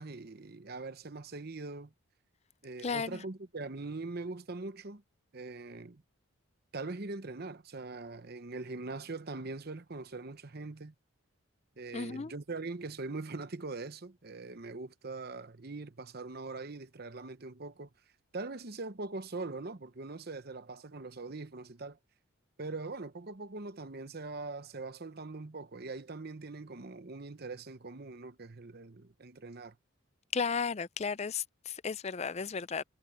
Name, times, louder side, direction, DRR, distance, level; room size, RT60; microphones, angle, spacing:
voice 1, 0.0-1.9 2.6-5.0 5.3-6.0 6.7-10.9 11.8-17.9 18.3-22.0 22.6-29.7, right 3 dB, 45° right, 0.9 m, -42 dB
voice 2, 2.8-3.2 11.9-12.3 30.3-32.8, left 5 dB, 30° left, 0.4 m, -34 dB
head